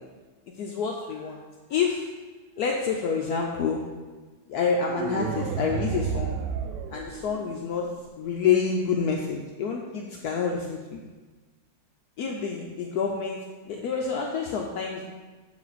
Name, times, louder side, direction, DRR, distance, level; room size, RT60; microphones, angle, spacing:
voice 1, 0.6-1.4 1.7-2.1 2.6-3.8 4.5-6.4 6.9-7.9 8.2-11.0 12.2-13.4 13.7-15.0, left 6 dB, 70° left, 0 dB, 1.1 m, -28 dB
sound 1, 4.8-7.8, right 7 dB, 75° right, 1.2 m, -31 dB
7.7 x 4.9 x 4.1 m, 1.3 s
omnidirectional pair, 1.9 m